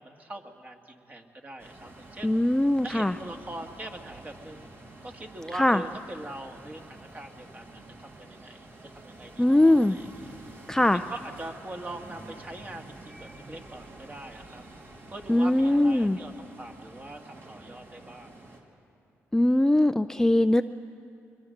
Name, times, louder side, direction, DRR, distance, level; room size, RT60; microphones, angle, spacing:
voice 1, 0.0-2.3 2.8-4.7 5.0-10.1 10.8-14.6 15.1-18.3, right 1 dB, 30° right, 3 dB, 2.0 m, -42 dB
sound 1, 1.6-18.6, right 2 dB, 50° right, 3.0 m, -48 dB
voice 2, 2.2-3.1 5.6-5.8 9.4-10.0 10.7-11.0 15.3-16.2 19.3-20.6, left 1 dB, 10° left, 10 dB, 0.4 m, -21 dB
23.0 x 21.5 x 6.6 m, 2.5 s
cardioid pair, 70°, 5 cm